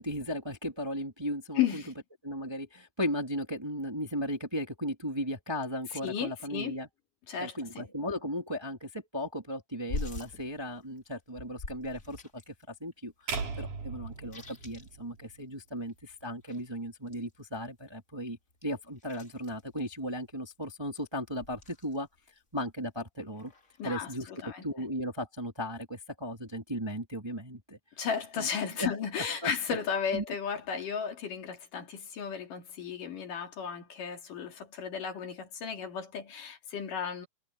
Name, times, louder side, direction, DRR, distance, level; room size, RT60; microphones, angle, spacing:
voice 1, 0.0-1.8 2.2-6.9 7.4-22.1 22.5-23.5 23.8-24.3 24.6-27.8 28.4-28.5 28.8-29.0 29.4-29.5 30.1-30.2, equal, 10° right, 1.9 m, -36 dB
voice 2, 1.6-1.9 6.0-6.7 7.3-7.9 23.8-24.7 28.0-37.3, left 7 dB, 70° left, 4.4 m, -34 dB
sound 1, 9.9-12.7 12.9-13.0 13.2-15.6 15.9-17.9 18.5-20.6 21.3-22.2 22.5-23.0 23.3-24.2, left 3 dB, 25° left, 2.5 m, -44 dB
sound 2, 13.3-15.5, right 5 dB, 65° right, 5.3 m, -38 dB
omnidirectional pair, 3.9 m